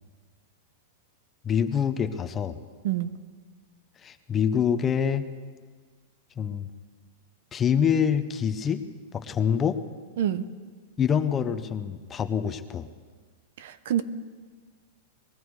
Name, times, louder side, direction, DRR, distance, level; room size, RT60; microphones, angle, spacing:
voice 1, 1.4-2.6 4.0-5.2 6.4-6.7 7.5-8.8 9.1-9.8 11.0-12.9, left 7 dB, 20° left, 9 dB, 0.7 m, -25 dB
voice 2, 2.8-3.1 10.2-10.4 13.9-14.0, right 11 dB, 65° right, 13 dB, 0.8 m, -25 dB
20.0 x 14.0 x 4.8 m, 1.5 s
supercardioid pair, 150°, 0 cm